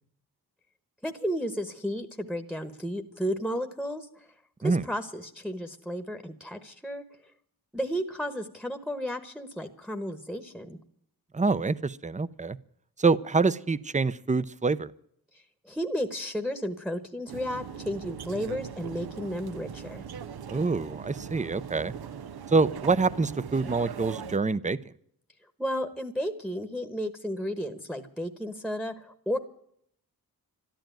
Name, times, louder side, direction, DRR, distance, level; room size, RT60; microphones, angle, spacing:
voice 1, 1.0-4.2 4.6-7.0 7.7-10.8 15.3-20.0 25.6-29.4, equal, ahead, 7 dB, 1.1 m, -33 dB
voice 2, 11.3-12.6 13.0-14.9 20.5-21.9 22.5-24.8, right 4 dB, 20° right, 17 dB, 0.6 m, -26 dB
sound 1, 17.3-24.4, right 7 dB, 80° right, 0.8 m, -40 dB
13.0 x 11.5 x 9.0 m, 0.68 s
wide cardioid pair, 120°, 37 cm